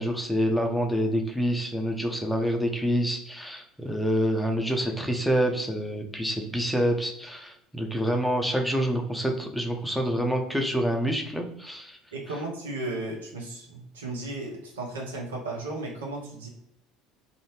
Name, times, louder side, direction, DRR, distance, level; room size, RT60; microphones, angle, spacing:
voice 1, 0.0-12.0, equal, ahead, 2 dB, 0.5 m, -27 dB
voice 2, 12.1-16.5, right 2 dB, 80° right, -1 dB, 0.7 m, -35 dB
2.6 x 2.0 x 3.1 m, 0.76 s
hypercardioid pair, 70°, 0 cm